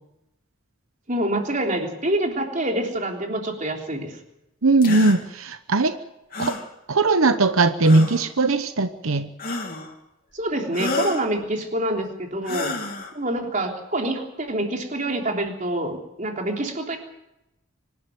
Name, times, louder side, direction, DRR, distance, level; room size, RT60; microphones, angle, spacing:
voice 1, 1.1-4.2 10.3-12.8 13.1-17.0, right 1 dB, 35° right, 2 dB, 3.5 m, -26 dB
voice 2, 4.6-5.9 6.4-6.5 6.9-9.3, right 3 dB, 90° right, 10 dB, 1.0 m, -19 dB
sound 1, 4.8-5.2 6.3-6.7 7.8-8.3 9.4-9.9 10.7-11.3 12.4-13.1, left 2 dB, 45° left, 3.2 m, -29 dB
25.0 x 12.5 x 9.4 m, 0.88 s
head